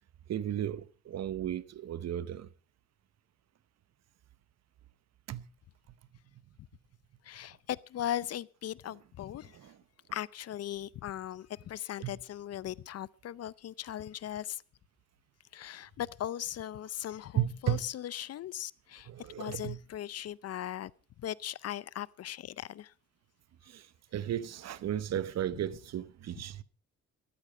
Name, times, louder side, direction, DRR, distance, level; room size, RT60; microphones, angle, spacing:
voice 1, 0.3-2.5 5.3-5.4 9.6-9.7 12.0-12.1 17.3-17.8 19.1-19.8 23.7-23.8 24.1-26.6, right 11 dB, 60° right, 0.9 m, -34 dB
voice 2, 7.2-9.6 10.1-14.6 15.5-20.9 21.2-22.9, left 11 dB, 55° left, 0.6 m, -38 dB
13.5 x 13.0 x 5.0 m
cardioid pair, 90°, 30 cm